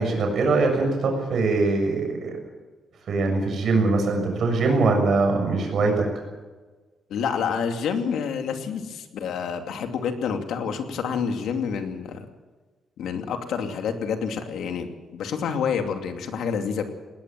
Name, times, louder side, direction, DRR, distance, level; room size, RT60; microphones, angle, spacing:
voice 1, 0.0-2.3 3.1-6.0, right 3 dB, 50° right, 2 dB, 6.8 m, -22 dB
voice 2, 7.1-12.3 13.0-16.9, left 6 dB, 85° left, 5 dB, 2.6 m, -28 dB
19.5 x 19.0 x 7.6 m, 1.3 s
wide cardioid pair, 175°, 0 cm